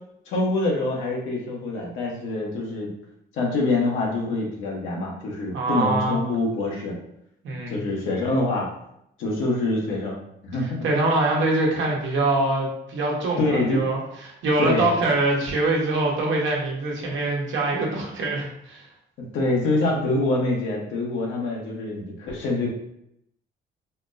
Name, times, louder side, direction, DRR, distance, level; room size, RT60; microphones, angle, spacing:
voice 1, 0.3-2.9 3.3-7.0 7.7-8.7 9.2-10.2 10.4-10.8 13.4-13.9 14.6-14.9 19.2-22.7, left 2 dB, 80° left, -2 dB, 1.0 m, -25 dB
voice 2, 5.5-6.2 7.4-7.8 10.8-14.0 14.2-18.8, right 2 dB, 75° right, -2 dB, 1.0 m, -24 dB
4.2 x 2.0 x 2.6 m, 0.76 s
cardioid pair, 90°, 20 cm